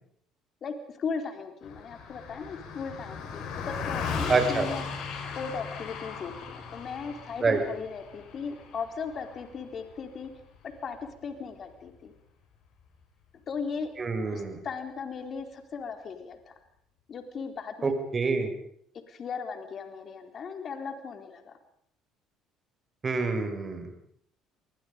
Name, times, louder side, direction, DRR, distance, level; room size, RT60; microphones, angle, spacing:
voice 1, 0.6-4.9 5.4-10.3 10.8-12.1 13.5-13.9 14.3-16.5 17.1-17.9 19.1-21.5, left 5 dB, 45° left, 6 dB, 3.9 m, -37 dB
Car passing by, 1.6-11.2, left 5 dB, 70° left, 4.7 m, -37 dB
voice 2, 4.3-4.7 7.4-7.6 14.0-14.6 17.8-18.5 23.0-23.9, right 4 dB, 30° right, 6 dB, 5.1 m, -26 dB
27.0 x 21.0 x 5.2 m, 0.68 s
supercardioid pair, 80°, 0 cm